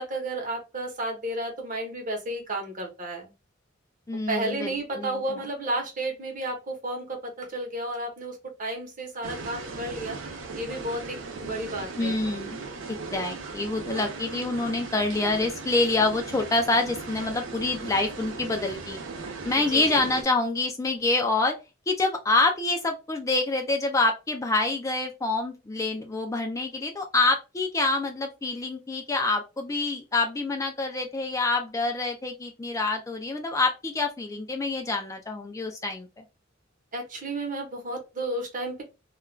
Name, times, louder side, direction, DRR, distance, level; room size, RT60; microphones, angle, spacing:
voice 1, 0.0-3.3 4.3-10.2 10.6-12.2 19.6-20.1 36.9-38.8, right 1 dB, 45° right, 1 dB, 0.9 m, -32 dB
voice 2, 4.1-5.2 12.0-12.6 13.1-19.0 19.4-21.6 21.9-36.1, left 3 dB, 15° left, 4 dB, 0.3 m, -26 dB
sound 1, 9.2-20.2, right 4 dB, 75° right, 0.6 m, -38 dB
2.3 x 2.2 x 3.1 m, 0.27 s
head